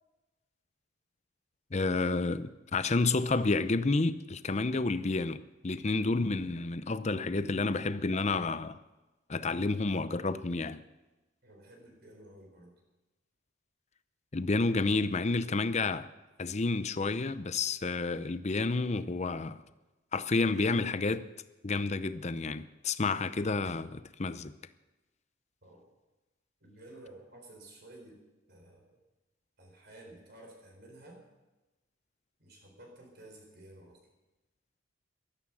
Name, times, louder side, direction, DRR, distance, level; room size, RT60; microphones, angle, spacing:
voice 1, 1.7-8.8 9.3-10.8 14.3-16.1 16.4-19.6 20.1-21.2 21.6-24.5, left 3 dB, 35° left, 0.6 m, -30 dB
voice 2, 11.4-12.7 25.6-25.8 26.6-28.2 28.5-29.0 29.6-31.2 32.4-34.0, right 1 dB, 55° right, 4.6 m, -53 dB
16.0 x 13.0 x 6.2 m
head